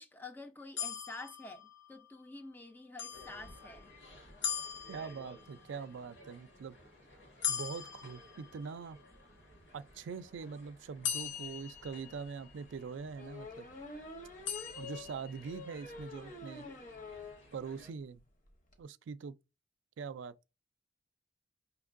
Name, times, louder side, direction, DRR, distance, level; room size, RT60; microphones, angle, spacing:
voice 1, 0.0-3.9, left 2 dB, 10° left, 0.3 m, -48 dB
sound 1, 0.8-2.1 3.0-3.9 4.4-5.6 7.4-8.9 11.0-12.6 14.5-15.6, left 8 dB, 85° left, 0.7 m, -40 dB
sound 2, 3.1-17.9, equal, 70° left, 1.5 m, -57 dB
voice 2, 4.9-6.8 7.5-9.0 9.7-13.7 14.8-16.7 17.5-18.2 18.8-19.3 20.0-20.3, right 5 dB, 80° right, 0.3 m, -43 dB
sound 3, 11.9-12.0 13.2-17.5 17.8-17.9 18.2-18.3 18.5-18.7, left 3 dB, 45° left, 0.7 m, -47 dB
5.1 x 2.9 x 2.5 m
head